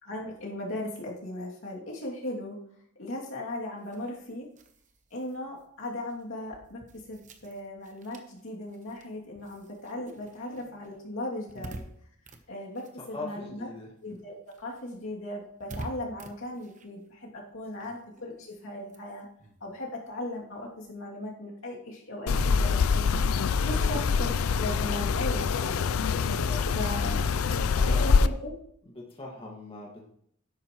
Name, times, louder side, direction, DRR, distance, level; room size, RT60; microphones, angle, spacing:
voice 1, 0.0-2.6 3.0-4.5 5.1-11.8 12.5-13.7 14.0-19.3 19.6-23.2 23.6-25.8 26.7-27.3 27.9-28.5, left 1 dB, 70° left, -3 dB, 2.6 m, -37 dB
sound 1, 3.8-13.7 14.0-20.9, right 1 dB, 35° right, 1.0 m, -49 dB
voice 2, 13.1-13.9 17.8-17.9 23.7-23.8 26.4-26.8 27.7-28.3 28.9-30.0, left 2 dB, 25° left, -2 dB, 1.9 m, -40 dB
sound 2, 22.3-28.3, left 5 dB, 85° left, 0.5 m, -25 dB
12.0 x 11.0 x 3.1 m, 0.69 s
head